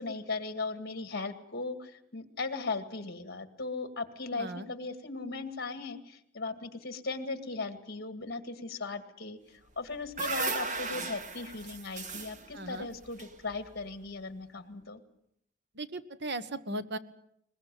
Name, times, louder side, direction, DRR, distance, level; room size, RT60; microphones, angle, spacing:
voice 1, 0.0-15.0, left 3 dB, 55° left, 10 dB, 2.1 m, -38 dB
voice 2, 4.3-4.7 12.5-12.9 15.7-17.0, right 2 dB, 60° right, 12 dB, 1.4 m, -37 dB
sound 1, 9.7-14.0, right 4 dB, 40° right, 1.7 m, -37 dB
22.0 x 21.0 x 9.1 m, 0.75 s
head